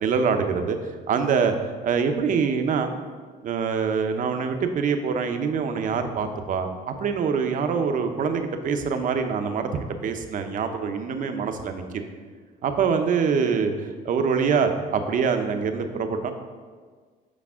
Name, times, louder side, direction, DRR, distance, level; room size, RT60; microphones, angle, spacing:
voice 1, 0.0-1.5 1.8-2.9 3.4-12.0 12.6-16.3, right 6 dB, 50° right, 6 dB, 0.8 m, -25 dB
8.4 x 5.4 x 3.6 m, 1.6 s
cardioid pair, 110°, 17 cm